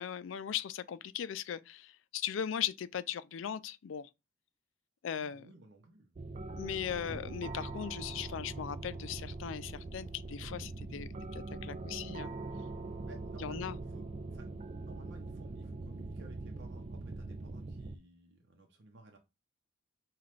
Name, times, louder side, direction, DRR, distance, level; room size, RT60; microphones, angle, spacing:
voice 1, 0.0-4.1 5.0-5.5 6.6-12.3 13.4-13.8, left 9 dB, 80° left, 0.4 m, -38 dB
voice 2, 5.2-6.2 13.1-19.2, right 2 dB, 65° right, 0.8 m, -57 dB
sound 1, 6.2-18.0, right 2 dB, 35° right, 0.4 m, -42 dB
Drum, 7.1-10.6, equal, 25° left, 1.5 m, -55 dB
5.7 x 2.4 x 3.2 m
head